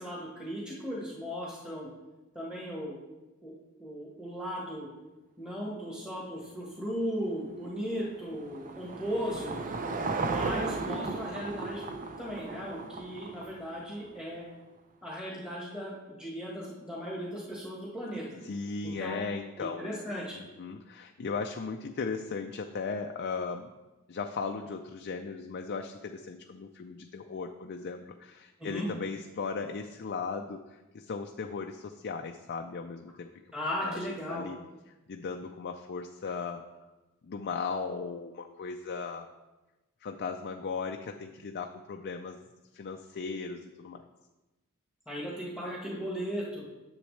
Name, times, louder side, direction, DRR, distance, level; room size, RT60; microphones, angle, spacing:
voice 1, 0.0-1.9 2.3-3.0 3.4-3.5 3.8-4.9 5.4-9.6 10.2-11.8 12.2-14.4 15.0-18.3 18.8-19.2 19.6-20.3 28.6-28.9 33.5-34.4 45.1-46.6, equal, 5° right, -5 dB, 1.4 m, -36 dB
Car passing by / Engine, 7.6-14.1, right 3 dB, 35° right, 0.5 m, -36 dB
voice 2, 10.6-11.2 18.4-20.0 20.3-23.7 24.1-33.3 33.8-34.6 35.1-36.7 37.2-39.3 40.0-42.4 42.7-44.1, left 5 dB, 45° left, 4 dB, 0.4 m, -37 dB
10.0 x 7.1 x 3.2 m, 1.1 s
head